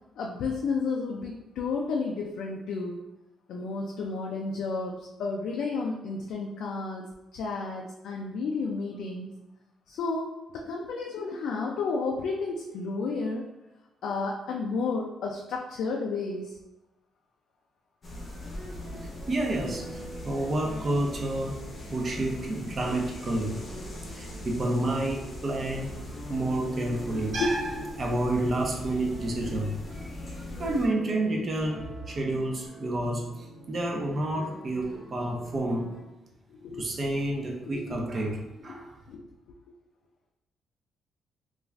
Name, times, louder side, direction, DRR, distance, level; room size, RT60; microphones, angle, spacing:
voice 1, 0.2-3.0 3.5-7.0 7.3-9.3 9.9-13.5 14.0-16.5 18.6-19.3 27.4-27.9 36.5-36.8 37.7-38.0 38.7-39.2, left 4 dB, 75° left, -1 dB, 0.3 m, -32 dB
sound 1, 18.0-30.9, left 1 dB, 40° left, 0.7 m, -41 dB
sound 2, 18.4-36.0, left 1 dB, 5° left, 1.0 m, -45 dB
voice 2, 19.3-21.6 21.9-23.7 24.1-25.9 26.3-27.7 28.0-29.7 30.6-35.9 36.8-38.9, right 1 dB, 40° right, 0 dB, 0.6 m, -29 dB
2.4 x 2.3 x 3.1 m, 0.97 s
cardioid pair, 90°, 0 cm